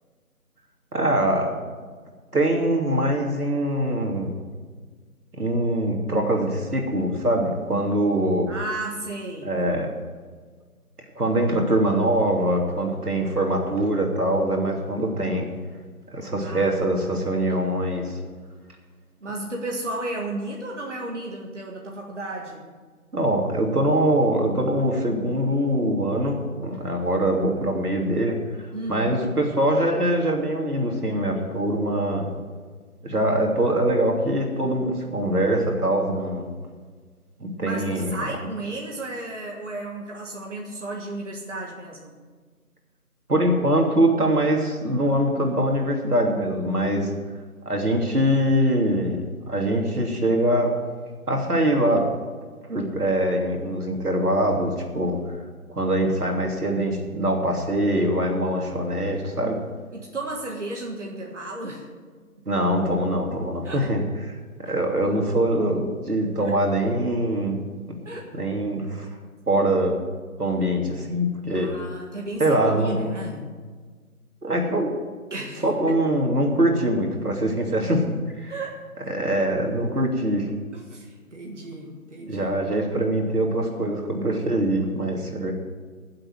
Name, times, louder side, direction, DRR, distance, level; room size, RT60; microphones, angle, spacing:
voice 1, 0.9-1.5 2.3-4.3 5.4-8.5 9.4-9.9 11.2-15.5 16.1-18.2 23.1-32.3 33.0-36.5 37.4-38.1 43.3-47.1 47.6-49.2 49.5-50.7 51.3-52.1 52.7-55.2 55.7-59.6 62.5-64.0 64.6-67.6 68.3-69.1 69.5-70.0 70.4-71.7 72.4-73.1 74.4-74.9 75.6-78.5 79.1-80.5 82.3-85.5, right 1 dB, 90° right, 1 dB, 3.1 m, -23 dB
voice 2, 8.5-9.5 16.4-17.8 19.2-22.7 28.7-29.3 37.6-42.1 59.9-61.9 63.6-63.9 64.7-64.8 66.4-66.5 68.1-68.2 71.5-73.5 75.3-76.0 78.5-78.8 80.7-82.5, right 2 dB, 55° right, -1 dB, 1.9 m, -34 dB
14.0 x 7.7 x 7.8 m, 1.5 s
figure-of-eight pair, 175°, 44 cm